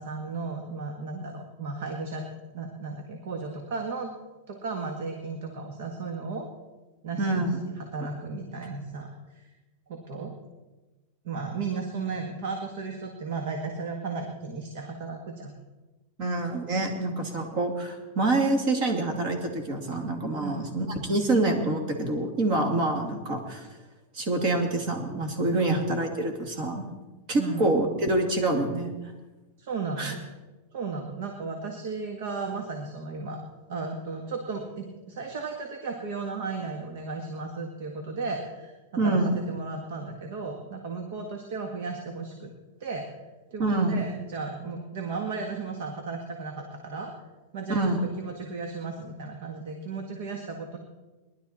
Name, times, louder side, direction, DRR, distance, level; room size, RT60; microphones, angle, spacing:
voice 1, 0.0-2.2 2.5-4.1 4.5-6.5 7.0-9.5 9.9-10.3 11.2-15.5 20.4-20.6 25.5-25.8 27.4-27.8 29.6-30.3 30.7-33.4 33.7-38.7 39.0-42.5 42.8-43.1 43.5-47.1 47.5-50.8, right 4 dB, 60° right, 3 dB, 1.8 m, -35 dB
voice 2, 7.2-7.6 16.2-23.7 24.1-26.8 27.3-28.9 30.0-30.1 39.0-39.3 43.6-44.1 47.7-48.0, right 2 dB, 40° right, 4 dB, 2.4 m, -26 dB
19.5 x 11.5 x 4.3 m, 1.2 s
supercardioid pair, 160°, 0 cm